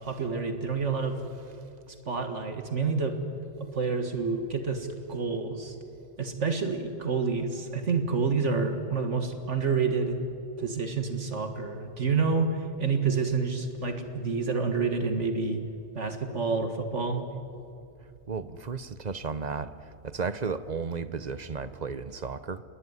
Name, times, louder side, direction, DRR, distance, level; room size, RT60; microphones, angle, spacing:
voice 1, 0.0-1.2 1.9-3.2 3.6-5.8 6.2-10.2 10.6-15.6 15.9-17.3, right 4 dB, 60° right, 6 dB, 2.0 m, -28 dB
voice 2, 18.3-19.7 20.0-22.6, right 5 dB, 40° right, 13 dB, 0.8 m, -33 dB
28.5 x 20.5 x 9.7 m, 2.6 s
omnidirectional pair, 1.4 m